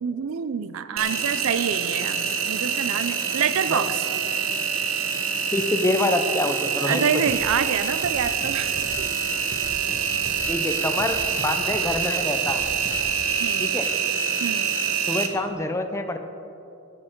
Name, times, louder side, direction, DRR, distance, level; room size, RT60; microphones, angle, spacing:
voice 1, 0.0-4.1 6.8-9.1 13.4-13.7 14.4-14.8, right 7 dB, 85° right, 13 dB, 0.4 m, -27 dB
Engine, 1.0-15.3, right 7 dB, 70° right, 0.9 m, -26 dB
voice 2, 5.5-7.0 10.5-12.6 13.6-13.9 15.1-16.2, left 2 dB, 15° left, 7 dB, 0.5 m, -26 dB
sound 1, 7.3-13.2, left 1 dB, 35° left, 1.3 m, -40 dB
16.0 x 6.7 x 4.4 m, 2.8 s
head